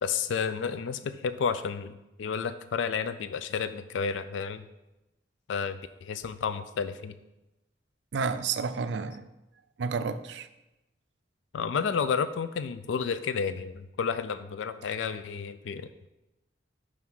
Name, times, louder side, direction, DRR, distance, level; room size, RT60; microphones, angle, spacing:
voice 1, 0.0-4.6 5.5-7.2 11.5-16.1, left 6 dB, 90° left, 12 dB, 0.4 m, -31 dB
voice 2, 8.1-9.3 9.8-10.5, right 5 dB, 70° right, 11 dB, 0.4 m, -30 dB
5.7 x 4.9 x 6.1 m, 0.97 s
head